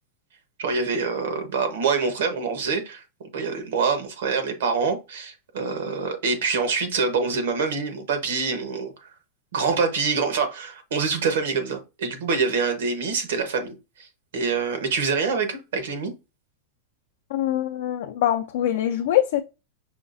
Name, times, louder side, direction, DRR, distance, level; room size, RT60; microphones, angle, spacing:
voice 1, 0.6-3.0 3.3-8.9 9.5-14.1 14.3-16.1, right 5 dB, 80° right, 1.0 m, -25 dB
voice 2, 17.3-19.4, left 12 dB, 60° left, 0.4 m, -23 dB
5.6 x 2.4 x 2.6 m
supercardioid pair, 170°, 0 cm